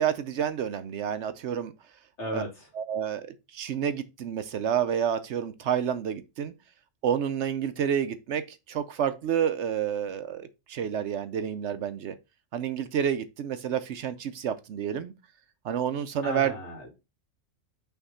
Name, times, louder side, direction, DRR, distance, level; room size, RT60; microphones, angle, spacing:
voice 1, 0.0-1.7 2.3-2.4 2.7-6.5 7.0-12.2 12.5-15.1 15.6-16.5, right 8 dB, 65° right, 0.9 m, -29 dB
voice 2, 2.2-2.7 16.2-16.9, equal, 60° left, 2.9 m, -35 dB
5.8 x 3.5 x 5.4 m
omnidirectional pair, 1.3 m